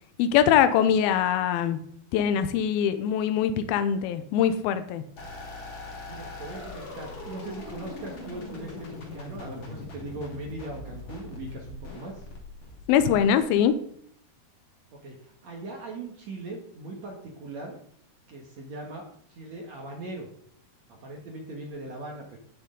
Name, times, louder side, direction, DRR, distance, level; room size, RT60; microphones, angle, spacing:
voice 1, 0.2-1.8 2.1-5.0 12.9-13.7, left 9 dB, 80° left, 11 dB, 2.5 m, -22 dB
sound 1, 5.2-13.6, left 2 dB, 40° left, 2.3 m, -41 dB
voice 2, 6.1-12.2 14.9-17.8 18.3-20.3 20.9-22.4, right 2 dB, 55° right, 0 dB, 2.1 m, -40 dB
15.5 x 6.3 x 3.9 m, 0.64 s
omnidirectional pair, 4.6 m